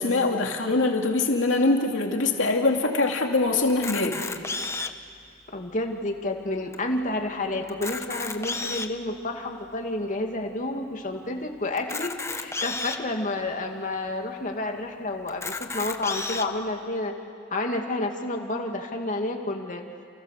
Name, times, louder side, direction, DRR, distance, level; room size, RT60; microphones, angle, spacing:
voice 1, 0.0-4.2, left 3 dB, 85° left, 2 dB, 2.6 m, -23 dB
Camera, 3.7-5.1 5.7-5.8 6.1-6.2 6.7-6.8 7.6-9.0 9.6-9.7 11.8-13.0 13.7-13.8 14.1-14.2 15.3-16.5, left 3 dB, 15° left, 1.1 m, -32 dB
voice 2, 5.5-17.1 17.5-19.8, left 2 dB, 40° left, 3 dB, 2.6 m, -30 dB
29.5 x 29.0 x 6.8 m, 2.3 s
head